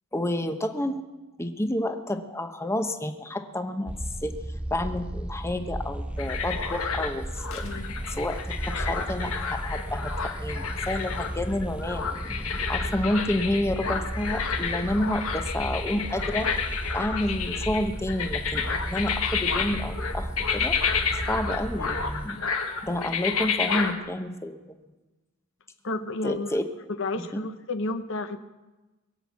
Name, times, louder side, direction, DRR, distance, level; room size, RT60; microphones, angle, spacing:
voice 1, 0.1-1.0 1.4-3.9 4.2-4.3 4.7-7.6 8.1-8.4 8.7-12.1 12.7-16.5 16.9-20.8 21.3-22.4 22.8-24.8 26.2-26.6 27.3-27.4, left 1 dB, 10° left, 7 dB, 1.0 m, -29 dB
sound 1, 3.9-22.3, right 1 dB, 5° right, 0.5 m, -34 dB
sound 2, 6.2-23.9, left 6 dB, 75° left, 1.7 m, -31 dB
voice 2, 7.6-8.0 25.8-26.6 26.9-28.4, left 2 dB, 60° left, 10 dB, 0.9 m, -31 dB
22.0 x 7.9 x 8.4 m, 1.1 s
head